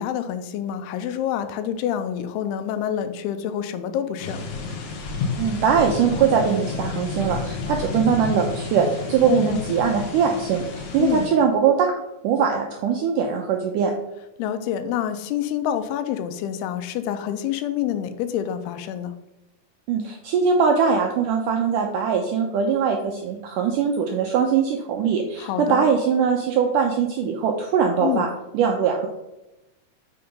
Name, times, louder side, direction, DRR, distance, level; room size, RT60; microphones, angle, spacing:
voice 1, 0.0-4.5 9.3-9.6 11.0-11.2 14.4-19.1 25.4-25.8 28.0-28.3, left 10 dB, 85° left, 9 dB, 2.7 m, -27 dB
sound 1, 4.2-11.3, left 4 dB, 65° left, 1.7 m, -30 dB
voice 2, 5.4-10.6 10.9-11.9 12.2-13.9 19.9-28.3 28.5-29.1, right 6 dB, 80° right, 2 dB, 1.8 m, -21 dB
6.5 x 5.8 x 5.4 m, 0.94 s
omnidirectional pair, 4.5 m